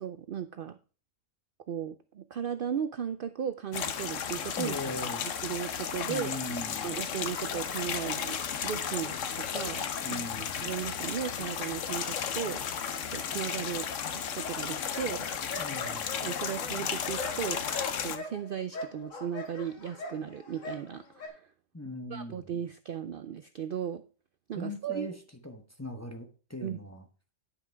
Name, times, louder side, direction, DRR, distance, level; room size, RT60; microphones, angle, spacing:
voice 1, 0.0-0.8 1.7-4.8 5.2-6.3 6.8-9.9 10.6-13.9 14.1-15.3 16.2-17.7 18.0-21.5 22.1-24.0 24.5-25.1 26.6-26.8, right 9 dB, 60° right, 11 dB, 0.6 m, -36 dB
sound 1, 3.7-18.2, left 7 dB, 70° left, 1.2 m, -34 dB
voice 2, 4.6-5.2 6.1-6.9 10.0-10.6 15.6-16.2 21.7-22.4 24.5-25.1 25.4-27.0, left 1 dB, 15° left, 5 dB, 0.9 m, -39 dB
sound 2, 14.8-21.3, left 3 dB, 90° left, 2.1 m, -41 dB
10.0 x 5.9 x 4.5 m, 0.37 s
omnidirectional pair, 1.3 m